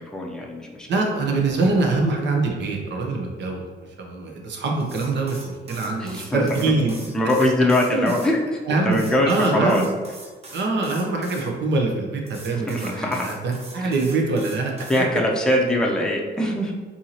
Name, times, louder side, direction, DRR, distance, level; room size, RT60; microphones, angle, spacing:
voice 1, 0.0-0.9 6.0-6.4 7.1-9.8 12.7-13.2 14.9-16.7, left 1 dB, 5° left, -1 dB, 0.6 m, -22 dB
voice 2, 0.9-6.9 7.9-8.1 8.7-9.0 9.3-9.8 10.5-14.7, right 3 dB, 65° right, 1 dB, 0.9 m, -24 dB
sound 1, 4.8-8.3 8.9-11.4 12.2-15.0, right 2 dB, 30° right, 1.1 m, -42 dB
4.5 x 2.8 x 2.9 m, 1.4 s
cardioid pair, 90°, 20 cm